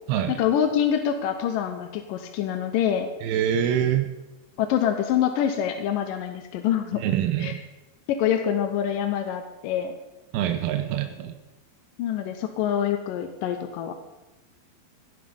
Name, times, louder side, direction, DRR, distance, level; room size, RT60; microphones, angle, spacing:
voice 1, 0.4-3.1 4.6-7.0 7.4-7.5 8.1-9.9 12.0-13.9, left 9 dB, 70° left, 5 dB, 2.3 m, -25 dB
voice 2, 3.2-4.1 7.0-7.6 10.3-11.4, right 10 dB, 80° right, 7 dB, 2.8 m, -25 dB
16.0 x 9.9 x 5.4 m, 1.0 s
omnidirectional pair, 4.5 m